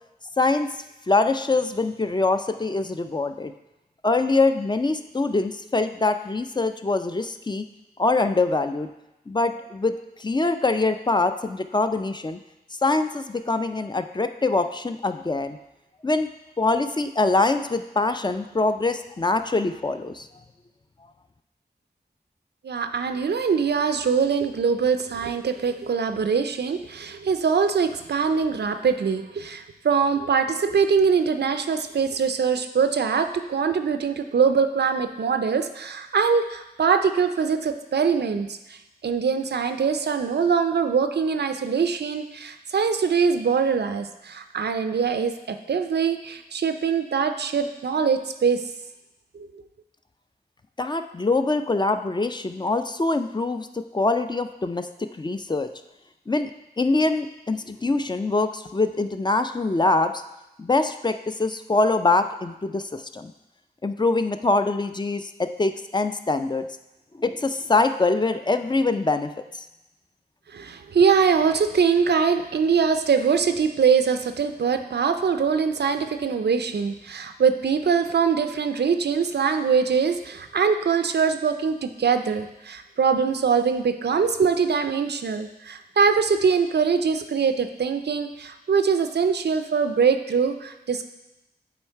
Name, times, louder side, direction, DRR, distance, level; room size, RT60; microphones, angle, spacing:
voice 1, 0.4-0.7 1.1-3.5 4.0-7.7 8.0-8.9 9.3-12.4 12.8-15.6 16.0-16.3 16.6-20.3 50.8-55.7 56.3-56.5 56.8-60.2 60.6-63.3 63.8-66.7 67.1-69.7, left 3 dB, 25° left, 8 dB, 0.4 m, -24 dB
voice 2, 22.6-48.7 49.3-49.6 70.5-91.0, right 6 dB, 85° right, 8 dB, 0.4 m, -23 dB
8.0 x 3.1 x 4.5 m, 0.94 s
wide cardioid pair, 55°, 17 cm